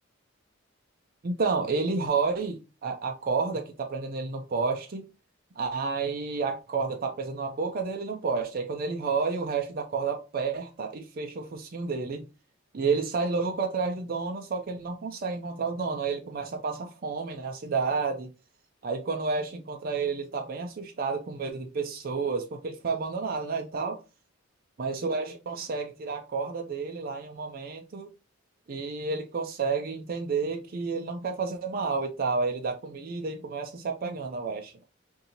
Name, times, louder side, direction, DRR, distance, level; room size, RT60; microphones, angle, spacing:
voice 1, 1.2-5.1 5.6-12.2 12.7-18.3 18.8-24.0 24.8-28.1 28.7-34.8, right 4 dB, 45° right, 0.5 m, -30 dB
5.3 x 2.6 x 2.8 m
head